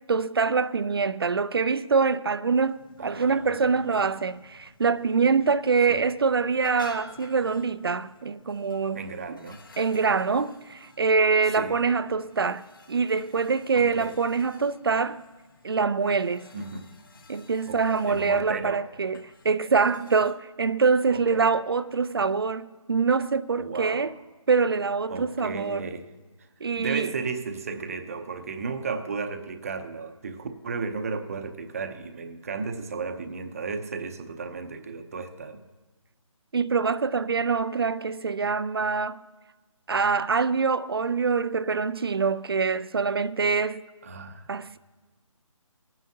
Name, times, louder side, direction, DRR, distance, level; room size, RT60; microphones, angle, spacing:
voice 1, 0.1-9.4 9.8-15.2 15.6-16.5 17.3-24.1 24.5-25.9 26.6-27.1 36.5-39.2 39.9-43.8 44.5-44.8, right 5 dB, 45° right, 0.4 m, -25 dB
sound 1, 2.5-20.3, left 3 dB, 40° left, 1.3 m, -53 dB
voice 2, 3.0-3.9 5.9-6.1 8.9-9.6 11.6-11.8 13.7-14.1 16.5-16.9 17.7-18.8 21.1-21.5 23.6-24.2 25.1-26.1 26.8-35.6 44.0-44.5, right 4 dB, 25° right, 0.7 m, -34 dB
24.5 x 9.4 x 2.8 m
hypercardioid pair, 170°, 17 cm